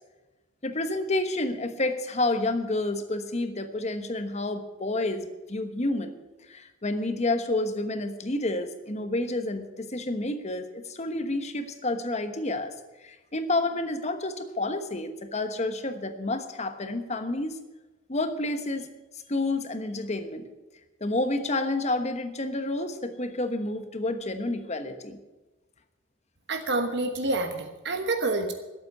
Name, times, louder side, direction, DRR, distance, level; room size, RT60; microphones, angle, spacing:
voice 1, 0.6-6.2 6.5-12.7 13.0-17.6 18.1-18.9 19.3-20.5 21.0-25.2, left 2 dB, 35° left, 9 dB, 1.2 m, -29 dB
voice 2, 26.5-28.5, right 2 dB, 55° right, 6 dB, 1.3 m, -28 dB
12.5 x 8.3 x 9.8 m, 1.1 s
head